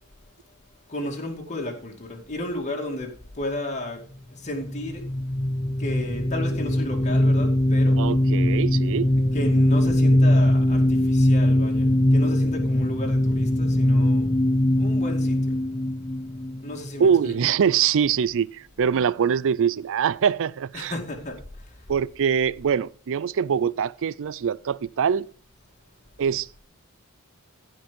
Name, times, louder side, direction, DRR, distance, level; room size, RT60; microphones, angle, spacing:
voice 1, 0.9-5.1 5.8-8.0 9.1-14.3 14.8-15.6 16.6-17.3 20.7-21.7, left 1 dB, 30° left, 2.3 m, -33 dB
sound 1, 4.7-17.2, left 1 dB, 15° left, 0.5 m, -21 dB
voice 2, 8.0-9.1 17.0-20.9 21.9-25.3 26.2-26.5, right 7 dB, 60° right, 0.4 m, -23 dB
15.5 x 5.3 x 5.2 m
head